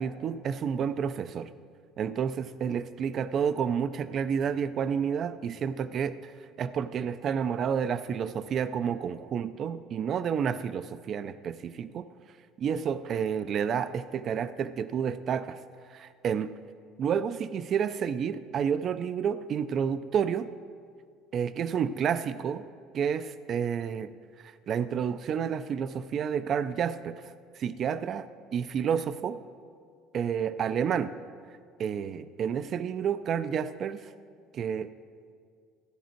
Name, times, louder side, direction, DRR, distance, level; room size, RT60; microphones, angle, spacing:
voice 1, 0.0-1.5 2.0-12.1 12.6-15.6 15.9-16.5 17.0-20.5 21.3-22.6 22.9-24.1 24.4-27.2 27.5-28.3 28.5-29.4 30.1-31.1 31.8-34.1 34.5-34.9, right 7 dB, 40° right, 13 dB, 0.3 m, -30 dB
14.0 x 10.0 x 4.5 m, 2.1 s
cardioid pair, 140°, 0 cm